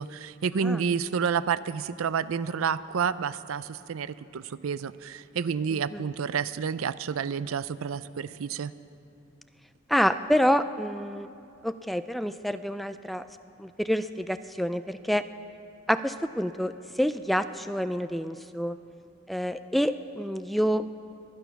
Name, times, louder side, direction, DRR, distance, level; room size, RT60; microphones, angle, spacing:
voice 1, 0.0-8.7, right 6 dB, 85° right, 16 dB, 0.4 m, -29 dB
voice 2, 5.7-6.0 9.9-11.3 11.6-13.3 13.6-15.2 15.9-16.7 17.0-18.8 19.3-20.9, equal, ahead, 11 dB, 0.3 m, -27 dB
23.5 x 9.3 x 5.8 m, 2.6 s
head